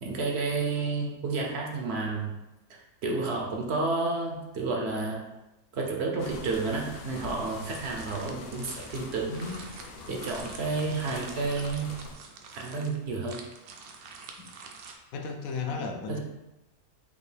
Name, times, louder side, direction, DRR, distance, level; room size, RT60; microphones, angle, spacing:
voice 1, 0.0-2.3 2.7-5.3 5.7-9.6 10.1-11.9 12.5-13.4 15.7-15.8 16.1-16.2, right 3 dB, 60° right, 0 dB, 0.7 m, -31 dB
sound 1, 6.2-12.1, left 3 dB, 90° left, 0.5 m, -44 dB
sound 2, 6.9-14.9, right 5 dB, 75° right, 1.0 m, -48 dB
voice 2, 15.1-16.2, left 5 dB, 70° left, 4 dB, 1.0 m, -34 dB
5.1 x 2.5 x 3.2 m, 0.98 s
omnidirectional pair, 1.6 m